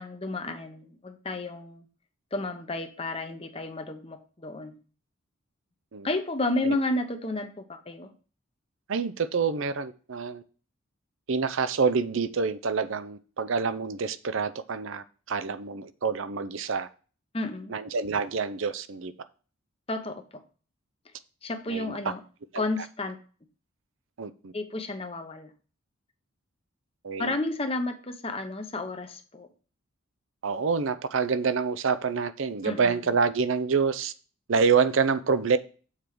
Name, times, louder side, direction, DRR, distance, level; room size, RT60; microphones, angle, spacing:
voice 1, 0.0-1.9 2.3-4.8 6.0-8.1 17.3-17.7 19.9-20.4 21.4-22.2 22.6-23.2 24.5-25.5 27.2-29.5 32.6-33.0, left 2 dB, 25° left, 0.8 m, -32 dB
voice 2, 8.9-10.4 11.3-16.9 17.7-19.1 21.7-22.1 22.5-22.6 24.2-24.5 27.0-27.4 30.4-34.1 34.5-35.6, right 5 dB, 65° right, 0.6 m, -27 dB
7.4 x 4.5 x 4.9 m
head